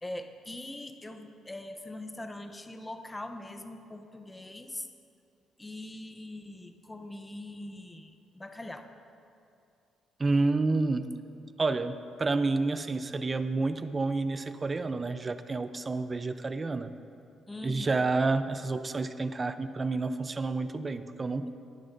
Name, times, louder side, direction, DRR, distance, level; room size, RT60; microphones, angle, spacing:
voice 1, 0.0-4.9 5.6-8.9 17.5-18.0, left 1 dB, 15° left, 7 dB, 0.7 m, -42 dB
voice 2, 10.2-11.1 11.6-16.9 17.6-21.5, right 3 dB, 30° right, 11 dB, 0.5 m, -29 dB
19.0 x 10.0 x 2.6 m, 2.6 s
cardioid pair, 90°, 0 cm